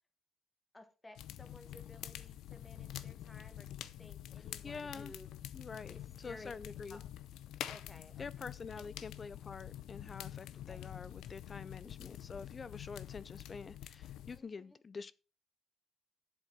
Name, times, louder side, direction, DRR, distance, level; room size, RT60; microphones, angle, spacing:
voice 1, 0.7-5.3 5.9-6.5 6.9-7.0 7.7-8.5 8.7-8.8 10.7-10.8 14.3-14.8, left 2 dB, 15° left, 1.5 m, -56 dB
sound 1, 1.1-14.4, left 12 dB, 85° left, 0.7 m, -47 dB
voice 2, 4.6-5.1 5.5-7.0 8.2-15.1, left 5 dB, 35° left, 0.4 m, -47 dB
8.0 x 7.3 x 5.3 m
cardioid pair, 90°, 0 cm